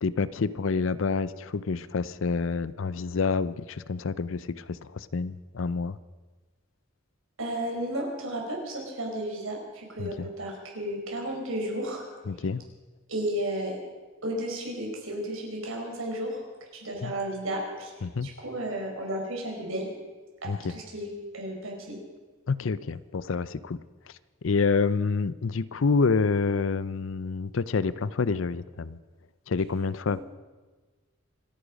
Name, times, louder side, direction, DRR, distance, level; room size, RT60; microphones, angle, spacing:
voice 1, 0.0-6.0 10.0-10.3 12.3-12.6 17.0-17.1 18.0-18.3 20.4-20.8 22.5-23.8 24.4-29.0 29.5-30.2, left 4 dB, 70° left, 17 dB, 0.6 m, -28 dB
voice 2, 7.4-12.0 13.1-13.8 14.2-16.4 16.7-17.9 18.2-19.9 20.4-22.0 30.1-30.2, right 1 dB, 85° right, 0 dB, 4.7 m, -33 dB
26.5 x 9.9 x 5.2 m, 1.3 s
head